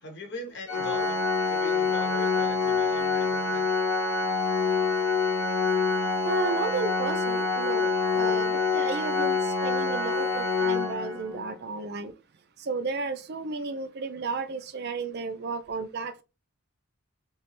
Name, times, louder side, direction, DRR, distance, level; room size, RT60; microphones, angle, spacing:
voice 1, 0.0-3.7, left 2 dB, 50° left, 0.9 m, -40 dB
Organ, 0.7-11.5, left 4 dB, 80° left, 0.9 m, -26 dB
voice 2, 6.2-12.1 12.6-16.2, right 4 dB, 50° right, 0.4 m, -33 dB
3.2 x 3.0 x 3.0 m
head